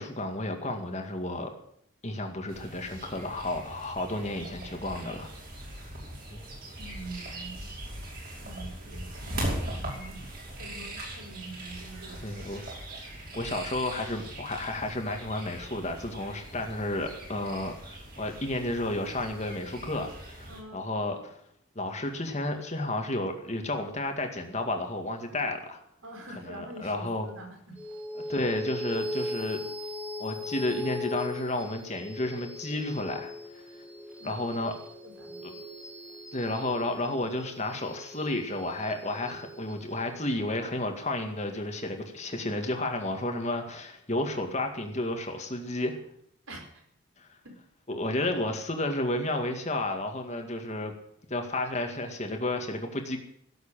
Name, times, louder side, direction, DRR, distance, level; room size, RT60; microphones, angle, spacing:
voice 1, 0.0-1.5 2.0-5.3 6.3-6.4 12.2-12.6 13.3-21.4 21.8-25.8 26.4-27.3 28.3-29.6 30.2-33.3 34.2-34.7 35.4-35.5 36.3-46.0 47.2-47.3 47.9-50.9 51.3-53.2, left 1 dB, 30° left, 4 dB, 2.1 m, -32 dB
sound 1, 2.5-20.6, right 1 dB, 45° right, 5.6 m, -40 dB
voice 2, 6.8-7.7 8.4-10.2 10.5-12.3 20.5-20.8 26.0-27.8 34.2-34.6 35.0-35.6 46.5-46.9 47.4-47.6 47.9-48.0, right 2 dB, 75° right, 2 dB, 4.9 m, -45 dB
sound 2, 27.8-42.5, left 2 dB, 5° right, 2.0 m, -40 dB
17.0 x 7.9 x 9.1 m, 0.68 s
head